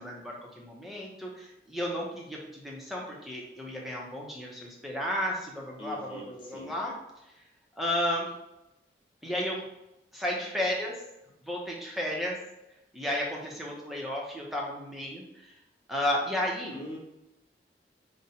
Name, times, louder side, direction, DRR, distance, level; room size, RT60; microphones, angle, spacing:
voice 1, 0.0-6.9 7.2-7.4 7.8-8.3 9.2-9.6 10.1-11.0 11.4-12.4 12.9-15.6 15.9-16.8, left 1 dB, ahead, -3 dB, 0.6 m, -33 dB
voice 2, 5.8-6.8 16.7-17.0, left 1 dB, 30° left, -4 dB, 0.9 m, -42 dB
5.1 x 2.1 x 2.8 m, 0.91 s
head